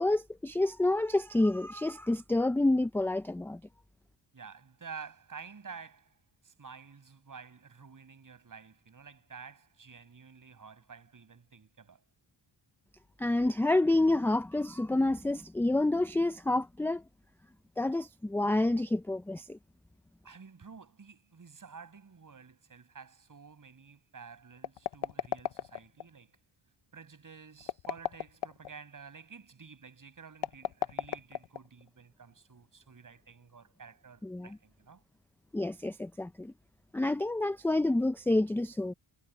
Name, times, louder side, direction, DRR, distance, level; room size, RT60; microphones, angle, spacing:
voice 1, 0.0-3.6 13.2-17.0 17.8-19.6 34.2-34.5 35.5-36.5 36.9-38.9, left 2 dB, 5° left, 0.4 m, -28 dB
voice 2, 4.3-6.2 6.4-12.0 20.2-26.4 26.9-35.0, right 5 dB, 40° right, 6.6 m, -50 dB
sound 1, 24.6-26.1 27.6-28.7 30.3-31.9, left 11 dB, 60° left, 0.8 m, -35 dB
cardioid pair, 85°, 48 cm